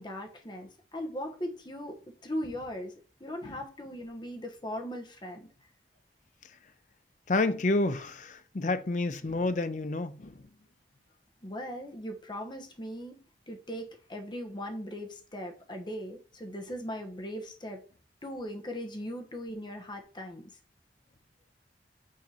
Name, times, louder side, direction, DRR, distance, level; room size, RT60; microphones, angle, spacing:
voice 1, 0.0-2.9 3.2-5.5 11.4-17.8 18.2-20.5, equal, 25° left, 0.9 m, -39 dB
voice 2, 7.3-10.3, left 2 dB, 45° left, 0.5 m, -29 dB
6.4 x 2.9 x 5.5 m
head